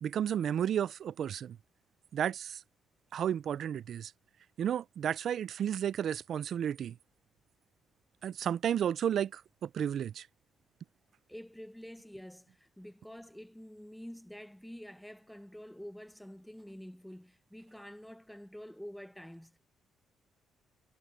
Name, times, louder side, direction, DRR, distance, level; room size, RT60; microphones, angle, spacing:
voice 1, 0.0-1.6 2.1-2.6 3.1-4.1 4.6-7.0 8.2-10.3, right 9 dB, 65° right, 0.4 m, -32 dB
voice 2, 11.3-19.6, equal, 5° left, 1.0 m, -48 dB
cardioid pair, 90°, 0 cm